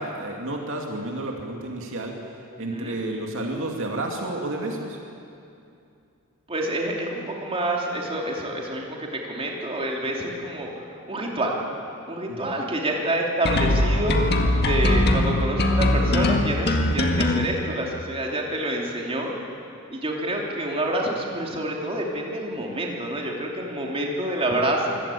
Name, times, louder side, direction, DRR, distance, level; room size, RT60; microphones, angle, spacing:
voice 1, 0.0-2.2 2.6-5.0 12.3-12.6, right 2 dB, 60° right, 1 dB, 2.5 m, -31 dB
voice 2, 6.5-11.5 12.1-14.2 14.6-19.3 19.9-25.0, right 1 dB, 25° right, -1 dB, 3.1 m, -27 dB
sound 1, 13.5-17.5, left 1 dB, 50° left, 1.9 m, -21 dB
24.5 x 17.0 x 8.6 m, 2.6 s
head